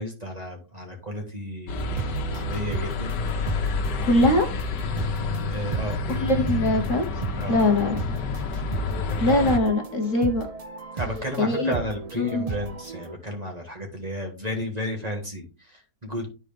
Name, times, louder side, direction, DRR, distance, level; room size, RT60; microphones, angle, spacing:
voice 1, 0.0-3.2 5.5-6.3 7.4-8.0 10.9-16.3, equal, 25° right, 1.6 m, -33 dB
sound 1, 1.7-9.6, left 3 dB, 90° left, 1.6 m, -29 dB
sound 2, 1.8-13.2, right 5 dB, 45° right, 0.4 m, -35 dB
voice 2, 4.0-4.5 6.2-7.1 7.5-8.0 9.2-10.5 11.4-11.7 12.2-12.5, left 1 dB, 50° left, 1.4 m, -22 dB
10.5 x 4.5 x 3.5 m
omnidirectional pair, 1.8 m